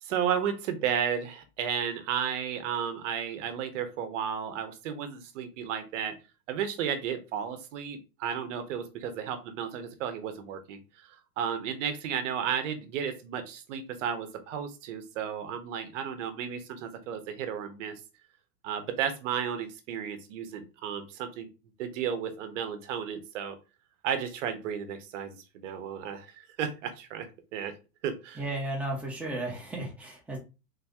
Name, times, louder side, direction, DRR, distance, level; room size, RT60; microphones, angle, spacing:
voice 1, 0.0-6.1 6.5-17.9 18.6-21.5 21.8-23.6 24.0-27.7 28.0-28.4, right 8 dB, 50° right, 9 dB, 1.0 m, -33 dB
voice 2, 28.4-30.4, right 2 dB, 5° right, -2 dB, 0.7 m, -34 dB
3.9 x 2.7 x 3.5 m, 0.30 s
supercardioid pair, 155°, 47 cm